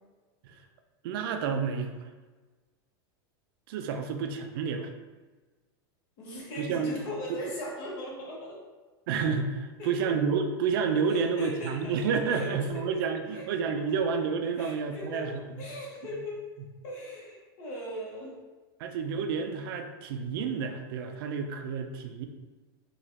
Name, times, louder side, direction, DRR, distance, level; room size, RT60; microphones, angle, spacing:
voice 1, 1.0-2.1 3.7-4.9 6.5-7.0 7.3-7.4 9.1-15.4 18.8-22.3, right 5 dB, 70° right, 6 dB, 0.4 m, -30 dB
voice 2, 6.2-8.6 9.8-10.1 11.1-12.0 12.3-12.9 13.3-13.4 14.6-15.3 15.6-16.4 16.8-18.4, equal, 55° left, -4 dB, 1.1 m, -39 dB
3.0 x 2.4 x 2.8 m, 1.3 s
supercardioid pair, 130°, 13 cm